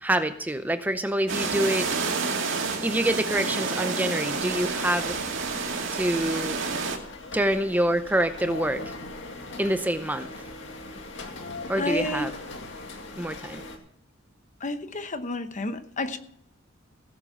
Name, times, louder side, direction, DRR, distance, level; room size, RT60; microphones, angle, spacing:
voice 1, 0.0-1.9 2.8-5.2 5.9-6.6 7.3-8.8 9.6-10.3 11.7-12.3 13.2-13.6, right 1 dB, 10° right, 9 dB, 0.6 m, -26 dB
sound 1, 1.3-7.0, right 4 dB, 70° right, 2.2 m, -29 dB
sound 2, 4.2-13.8, left 2 dB, 65° left, 2.0 m, -40 dB
voice 2, 11.8-12.3 14.6-16.2, left 2 dB, 40° left, 10 dB, 0.9 m, -30 dB
17.0 x 7.3 x 5.6 m, 0.72 s
head